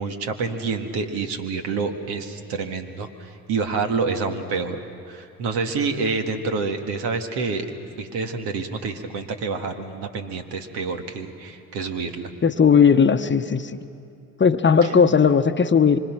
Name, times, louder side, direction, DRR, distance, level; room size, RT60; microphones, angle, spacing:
voice 1, 0.0-4.8 5.1-7.7 8.0-12.3, right 4 dB, 75° right, 5 dB, 1.9 m, -27 dB
voice 2, 12.4-13.8 14.4-16.0, left 6 dB, 30° left, 9 dB, 0.9 m, -17 dB
25.5 x 25.0 x 6.1 m, 2.5 s
hypercardioid pair, 60°, 40 cm